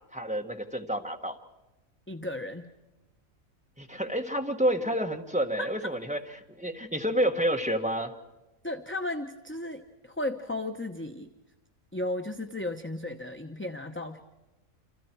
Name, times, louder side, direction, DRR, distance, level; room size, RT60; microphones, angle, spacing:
voice 1, 0.1-1.4 3.8-6.2 6.6-8.1, right 1 dB, 5° right, 3 dB, 1.6 m, -29 dB
voice 2, 2.1-2.7 5.6-5.7 8.6-11.3 11.9-14.2, left 1 dB, 10° left, 5 dB, 0.7 m, -34 dB
28.5 x 27.5 x 4.7 m, 1.0 s
omnidirectional pair, 1.4 m